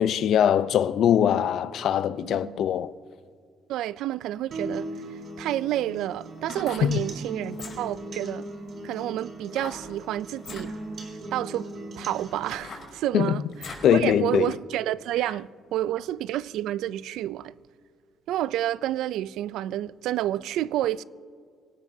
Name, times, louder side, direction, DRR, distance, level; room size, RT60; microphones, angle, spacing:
voice 1, 0.0-2.9 6.8-7.0 13.1-13.4 13.8-14.5, left 9 dB, 60° left, 0.5 m, -22 dB
voice 2, 2.2-2.6 3.7-4.9 5.4-8.5 8.8-10.7 11.3-11.7 12.0-17.5 18.3-21.0, right 13 dB, 80° right, 0.3 m, -29 dB
sound 1, 4.5-12.5, right 1 dB, 50° right, 3.7 m, -38 dB
sound 2, 6.3-6.9 7.5-8.0 9.5-9.9 10.3-10.7 11.4-11.5 12.0-13.9 14.4-14.5, left 4 dB, 45° left, 4.4 m, -42 dB
24.5 x 18.0 x 2.7 m
cardioid pair, 135°, 0 cm